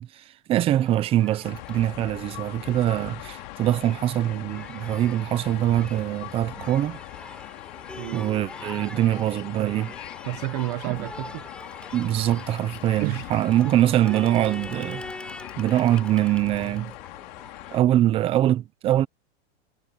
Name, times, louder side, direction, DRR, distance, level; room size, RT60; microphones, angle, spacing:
voice 1, 0.0-7.0 8.1-9.9 10.9-11.0 11.9-15.1 15.6-16.9 17.7-19.1, right 13 dB, 15° right, 0.7 m, -23 dB
Crowd, 0.7-17.8, left 1 dB, 5° left, 6.6 m, -44 dB
sound 1, 1.4-17.8, left 24 dB, 45° left, 3.5 m, -41 dB
voice 2, 8.0-8.3 9.6-9.7 10.3-11.5 13.0-13.3 13.6-13.8 14.0-14.5 15.9-16.0, right 22 dB, 40° right, 1.1 m, -31 dB
supercardioid pair, 160°, 32 cm